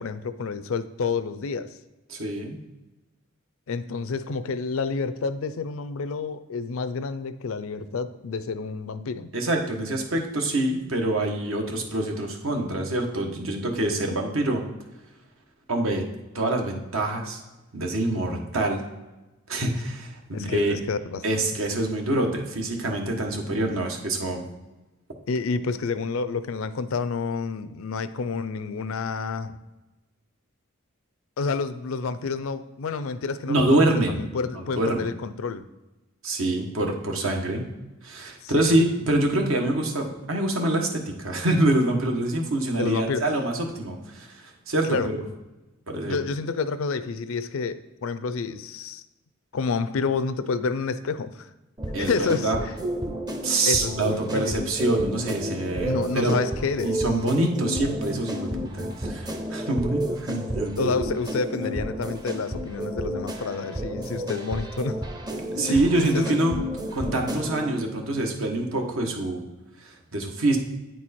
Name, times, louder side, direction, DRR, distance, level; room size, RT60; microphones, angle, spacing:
voice 1, 0.0-1.7 3.7-9.3 20.3-21.5 25.3-29.6 31.4-35.7 38.4-38.8 42.7-43.3 44.9-45.1 46.1-49.0 49.5-51.5 52.0-52.8 53.7-54.5 55.8-57.0 60.8-65.0 65.7-66.4, left 4 dB, 70° left, 13 dB, 0.5 m, -29 dB
voice 2, 2.1-2.6 9.3-14.6 15.7-16.1 16.3-17.4 17.7-18.8 19.5-20.7 21.2-24.4 33.5-34.2 34.5-35.1 36.2-37.7 38.0-45.2 45.9-46.2 51.9-52.6 53.4-56.3 56.8-60.9 65.5-66.5 66.9-69.4 69.8-70.6, right 1 dB, 70° right, 2 dB, 1.3 m, -25 dB
sound 1, 51.8-67.8, right 1 dB, 20° right, 0.6 m, -31 dB
9.1 x 4.5 x 4.3 m, 1.1 s
head